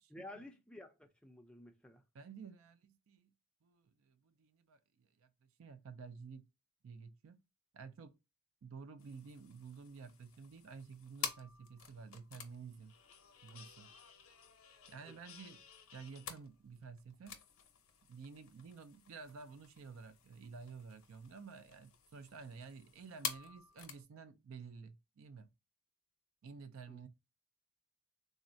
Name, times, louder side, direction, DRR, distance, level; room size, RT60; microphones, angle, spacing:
voice 1, 0.1-2.0 15.0-15.2 26.9-27.0, left 1 dB, 5° left, 0.4 m, -53 dB
voice 2, 2.1-3.3 3.6-6.4 6.8-7.4 7.7-8.2 8.6-13.0 13.4-13.9 14.9-15.6 15.9-17.4 18.1-25.5 26.4-27.1, right 5 dB, 75° right, 0.4 m, -52 dB
sound 1, 9.0-24.0, left 7 dB, 80° left, 0.6 m, -50 dB
3.7 x 2.1 x 2.5 m
head